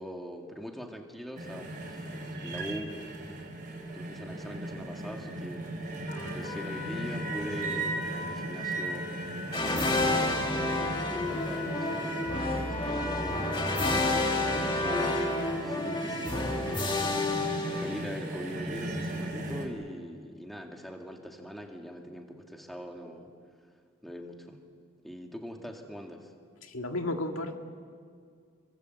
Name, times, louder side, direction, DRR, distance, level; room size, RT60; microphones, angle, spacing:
voice 1, 0.0-2.1 2.4-2.9 3.9-5.7 6.3-9.1 9.9-13.6 14.3-17.3 17.7-23.3 24.0-24.6 25.0-26.3, equal, ahead, 2 dB, 2.1 m, -42 dB
sound 1, 1.4-19.7, right 2 dB, 40° right, 4.4 m, -37 dB
Trumpet, 6.1-15.6, left 2 dB, 40° left, 5.2 m, -41 dB
sound 2, 9.5-18.4, left 2 dB, 20° left, 1.8 m, -30 dB
voice 2, 26.6-27.6, left 2 dB, 80° left, 4 dB, 2.0 m, -33 dB
29.0 x 24.0 x 7.9 m, 2.1 s
head